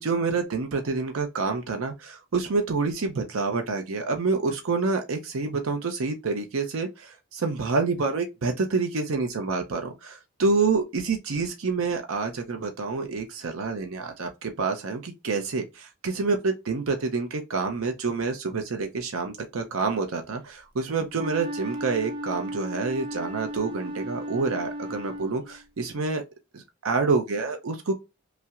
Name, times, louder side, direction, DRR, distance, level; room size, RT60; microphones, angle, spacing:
voice 1, 0.0-26.2 26.5-27.9, right 4 dB, 80° right, 0.6 m, -28 dB
Wind instrument woodwind instrument, 21.1-25.6, equal, 25° right, 0.6 m, -35 dB
5.5 x 2.0 x 2.3 m
head